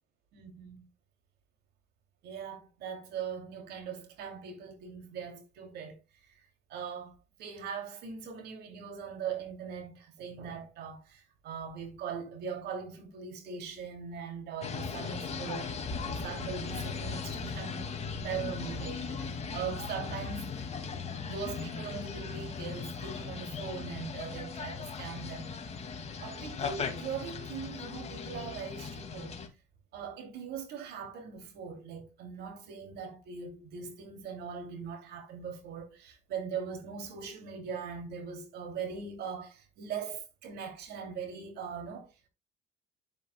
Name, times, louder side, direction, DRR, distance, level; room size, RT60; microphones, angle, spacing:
voice 1, 0.3-0.9 2.2-6.0 6.3-15.7 16.1-17.8 18.1-20.9 21.2-25.5 26.2-29.4 29.9-42.1, right 6 dB, 75° right, 2.6 m, -41 dB
sound 1, 14.6-29.5, left 5 dB, 40° left, 2.1 m, -38 dB
10.5 x 7.4 x 2.2 m
cardioid pair, 110°, 17 cm